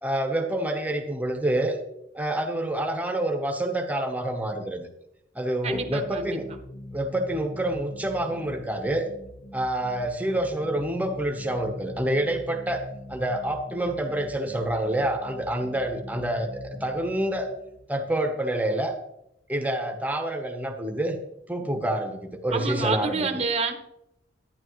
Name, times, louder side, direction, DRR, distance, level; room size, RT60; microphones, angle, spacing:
voice 1, 0.0-1.8 2.1-4.9 5.3-6.5 6.9-9.1 9.5-12.8 13.1-17.5 17.9-18.9 19.5-21.2 21.5-23.3, right 1 dB, 10° right, 4 dB, 0.9 m, -27 dB
voice 2, 5.6-6.4 22.5-23.7, right 4 dB, 35° right, 4 dB, 0.9 m, -28 dB
sound 1, 5.7-19.0, left 1 dB, 70° left, 1.2 m, -43 dB
11.5 x 10.0 x 3.1 m, 0.83 s
head